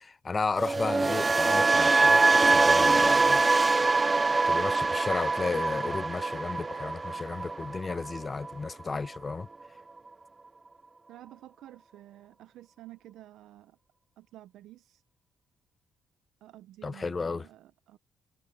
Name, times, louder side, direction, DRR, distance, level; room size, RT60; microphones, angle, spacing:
voice 1, 0.0-3.4 4.5-9.5 16.8-17.5, left 4 dB, 30° left, 0.7 m, -33 dB
sound 1, 0.6-8.7 8.9-9.3, right 3 dB, 25° right, 0.3 m, -24 dB
sound 2, 2.1-8.1, right 6 dB, 50° right, 1.6 m, -54 dB
voice 2, 11.1-13.8 14.2-15.0 16.4-18.0, right 14 dB, 85° right, 0.6 m, -51 dB
cardioid pair, 90°, 0 cm